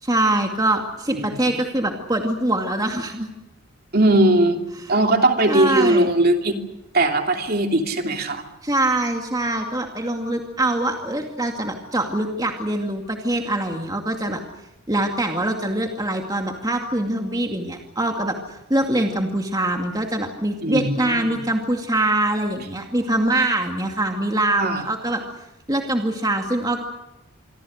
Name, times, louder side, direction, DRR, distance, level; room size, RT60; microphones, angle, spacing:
voice 1, 0.0-3.3 5.5-6.1 8.6-14.4 14.9-25.2 25.7-26.8, right 1 dB, 15° right, 3 dB, 2.3 m, -23 dB
voice 2, 1.1-1.5 3.9-4.6 4.9-6.6 6.9-8.4 20.6-21.3 24.6-24.8, right 1 dB, 45° right, 4 dB, 3.0 m, -19 dB
27.5 x 23.5 x 6.5 m, 0.96 s
head